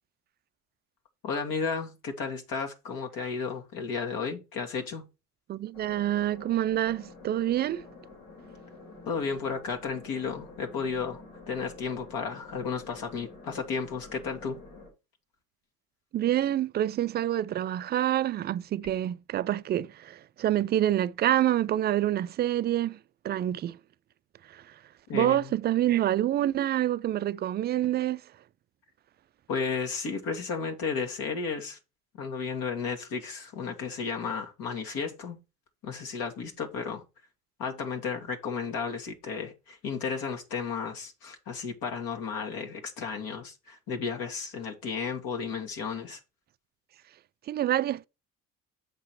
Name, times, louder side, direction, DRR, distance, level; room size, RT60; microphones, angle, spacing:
voice 1, 1.2-5.0 9.1-14.6 25.1-25.4 29.5-31.8 32.2-35.4 35.8-37.0 37.6-46.2, left 5 dB, 50° left, 1.9 m, -33 dB
voice 2, 5.5-7.9 16.1-23.0 23.2-23.8 24.5-24.7 25.1-28.2 47.5-48.1, right 12 dB, 25° right, 0.3 m, -27 dB
sound 1, 5.7-14.9, left 3 dB, 85° left, 3.9 m, -49 dB
7.6 x 5.6 x 4.5 m
figure-of-eight pair, 55°, 44 cm